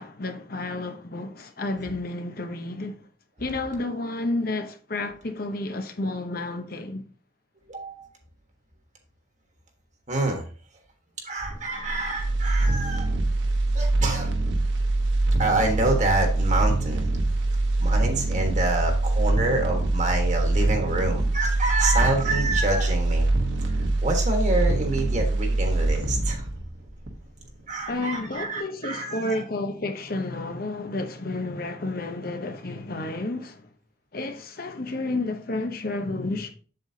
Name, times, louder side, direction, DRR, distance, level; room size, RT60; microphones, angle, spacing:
voice 1, 0.0-3.0 3.4-7.1 27.9-33.6 34.1-36.5, left 2 dB, 50° left, 1.0 m, -31 dB
voice 2, 7.7-8.1 10.1-10.4 11.2-13.1 13.7-14.3 15.4-17.1 17.8-23.3 23.7-26.4 27.7-29.4, right 2 dB, 40° right, 1.5 m, -27 dB
sound 1, 11.4-27.5 27.9-28.0, right 2 dB, 70° right, 1.3 m, -24 dB
7.8 x 7.7 x 2.8 m
head